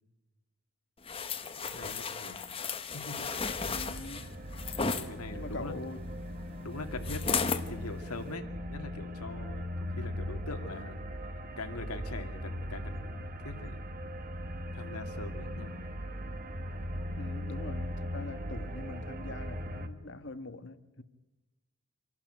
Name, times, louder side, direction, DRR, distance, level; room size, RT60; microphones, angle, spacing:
sound 1, 1.1-5.1 7.0-7.7 8.2-8.3, left 5 dB, 25° left, 1.0 m, -34 dB
voice 1, 1.6-2.4 2.9-3.7 4.9-5.7 6.6-11.0 11.6-13.8 14.7-15.7, left 2 dB, 90° left, 2.3 m, -43 dB
sound 2, 3.2-19.9, equal, 40° right, 1.4 m, -39 dB
voice 2, 3.7-4.3 5.3-6.1 17.2-21.0, left 2 dB, 55° left, 1.3 m, -43 dB
26.5 x 12.0 x 9.1 m
head